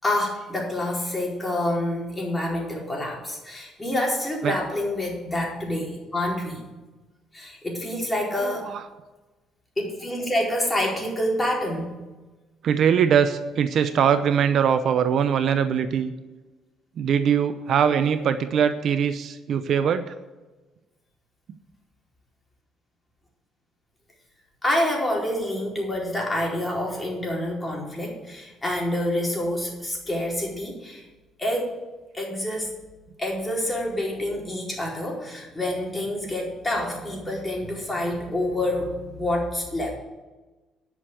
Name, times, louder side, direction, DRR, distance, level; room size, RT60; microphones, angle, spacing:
voice 1, 0.0-6.7 7.3-8.7 9.8-12.0 24.6-31.0 31.4-31.7 32.1-32.7 33.2-39.9, left 1 dB, 15° left, -2 dB, 4.4 m, -27 dB
voice 2, 8.4-8.8 12.6-16.1 17.0-20.1, right 8 dB, 60° right, 10 dB, 0.8 m, -22 dB
10.5 x 6.6 x 9.0 m, 1.2 s
cardioid pair, 90°, 0 cm